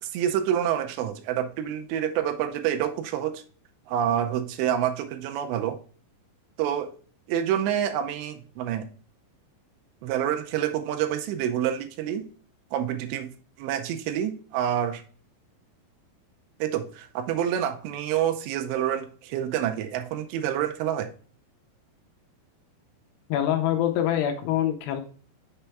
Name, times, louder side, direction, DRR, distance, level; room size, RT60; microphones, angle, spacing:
voice 1, 0.0-3.4 3.9-5.8 6.6-6.9 7.3-8.9 10.0-12.2 12.7-13.3 13.6-15.0 16.6-21.1, right 10 dB, 80° right, 7 dB, 2.7 m, -27 dB
voice 2, 23.3-25.0, left 11 dB, 80° left, 6 dB, 2.6 m, -25 dB
6.9 x 4.3 x 3.3 m, 0.42 s
omnidirectional pair, 5.2 m